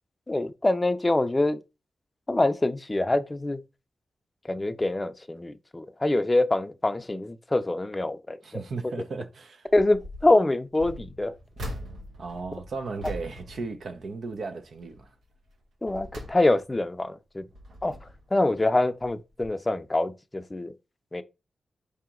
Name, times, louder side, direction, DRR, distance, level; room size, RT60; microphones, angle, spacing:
voice 1, 0.3-1.6 2.3-3.6 4.4-8.9 9.7-11.3 15.8-17.5 17.8-17.9 18.3-20.7 21.1-21.2, left 2 dB, 25° left, 0.5 m, -25 dB
voice 2, 8.4-9.7 12.2-15.1, right 4 dB, 70° right, 0.7 m, -35 dB
sound 1, 9.7-10.3 10.7-14.4 14.8-15.1 15.6-16.9 17.4-18.3 19.0-19.2 19.4-19.5, equal, 85° right, 1.1 m, -42 dB
4.8 x 2.8 x 3.7 m
cardioid pair, 65°, 0 cm